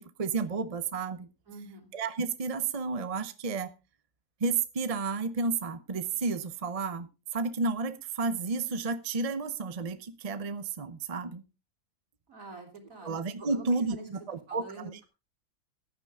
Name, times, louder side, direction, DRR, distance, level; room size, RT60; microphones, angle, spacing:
voice 1, 0.0-1.3 1.9-3.7 4.4-11.4 13.0-15.0, right 4 dB, 35° right, 11 dB, 0.6 m, -32 dB
voice 2, 1.5-1.9 12.3-13.1 13.4-14.1 14.5-15.1, right 3 dB, 65° right, 2 dB, 3.8 m, -46 dB
15.0 x 9.7 x 3.5 m, 0.30 s
omnidirectional pair, 1.5 m